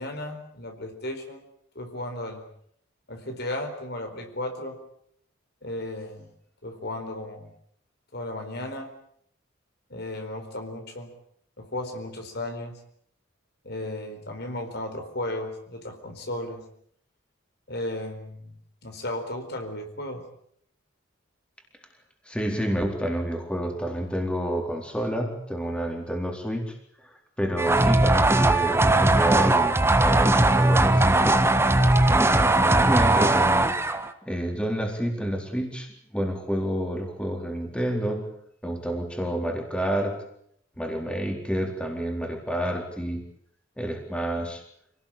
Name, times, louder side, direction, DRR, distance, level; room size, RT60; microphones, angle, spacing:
voice 1, 0.0-1.4 1.7-2.4 3.1-4.8 5.6-6.3 6.6-7.5 8.1-8.9 9.9-11.1 11.6-12.8 13.6-16.6 17.7-18.5 18.8-20.2, left 1 dB, 55° left, 5 dB, 4.4 m, -34 dB
voice 2, 22.2-31.4 32.1-33.7 34.2-38.3 38.6-40.2 40.8-43.2 43.8-44.6, equal, 5° left, 2 dB, 4.1 m, -29 dB
sound 1, 27.6-34.1, right 2 dB, 10° right, 1.5 m, -19 dB
27.5 x 18.5 x 8.8 m, 0.68 s
head